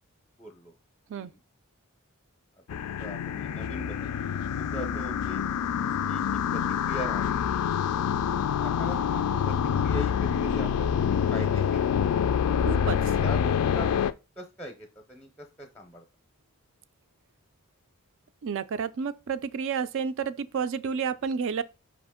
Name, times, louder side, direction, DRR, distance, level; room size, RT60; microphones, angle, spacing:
voice 1, 0.4-0.7 1.1-1.4 2.7-4.1 4.6-5.4 6.1-7.3 8.6-9.6 9.8-11.9 12.9-16.0, equal, 5° left, 0.6 m, -41 dB
sound 1, 2.7-14.1, left 8 dB, 85° left, 0.3 m, -26 dB
voice 2, 12.6-13.0 18.4-21.6, right 6 dB, 60° right, 0.4 m, -30 dB
5.0 x 2.9 x 3.6 m
head